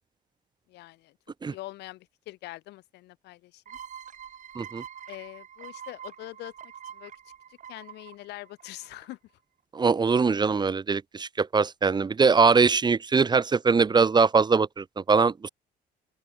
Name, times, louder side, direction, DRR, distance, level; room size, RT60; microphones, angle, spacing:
voice 1, 0.7-1.1 1.5-3.8 5.1-6.5 6.9-7.1 7.7-9.2, left 18 dB, 85° left, 3.5 m, -43 dB
sound 1, 3.7-9.1, right 9 dB, 50° right, 3.9 m, -45 dB
voice 2, 9.7-15.5, right 5 dB, 25° right, 1.3 m, -22 dB
open air
cardioid pair, 110°, 17 cm